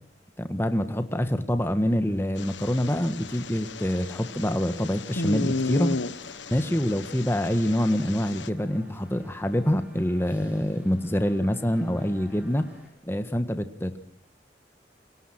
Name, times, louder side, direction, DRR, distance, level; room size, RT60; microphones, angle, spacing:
voice 1, 0.4-6.0 6.5-12.7 13.0-14.0, equal, 15° left, 9 dB, 1.5 m, -26 dB
sound 1, 1.7-12.9, equal, 10° right, 6.9 m, -55 dB
sound 2, 2.4-8.5, left 3 dB, 85° left, 1.4 m, -34 dB
28.0 x 24.5 x 6.0 m, 0.72 s
head